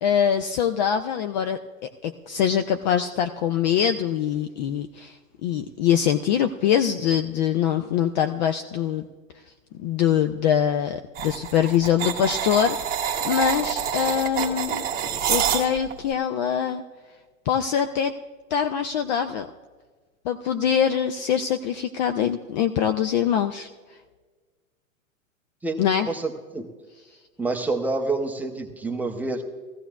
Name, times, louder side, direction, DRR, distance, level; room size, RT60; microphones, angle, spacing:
voice 1, 0.0-9.0 9.8-14.8 15.3-16.8 17.5-18.1 18.5-19.5 20.2-23.7 25.8-26.1, left 9 dB, 35° left, 8 dB, 0.4 m, -23 dB
sound 1, 11.1-16.0, right 8 dB, 20° right, 1.2 m, -27 dB
voice 2, 25.6-26.7 27.4-29.4, right 3 dB, 5° right, 3 dB, 0.7 m, -28 dB
17.5 x 15.0 x 2.3 m, 1.4 s
hypercardioid pair, 115°, 41 cm